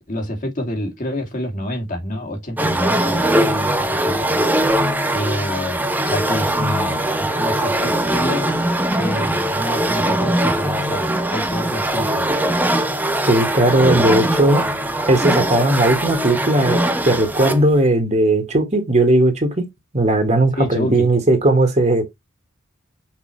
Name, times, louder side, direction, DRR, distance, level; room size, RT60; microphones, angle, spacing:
voice 1, 0.1-4.4 5.1-8.6 9.0-12.3 13.8-14.2 20.5-21.1, equal, 40° left, 2.4 m, -28 dB
sound 1, 2.6-17.7, right 1 dB, 10° right, 1.0 m, -21 dB
voice 2, 13.2-14.7 15.1-19.6 19.9-22.0, right 1 dB, 35° right, 1.9 m, -17 dB
6.3 x 4.9 x 3.2 m
head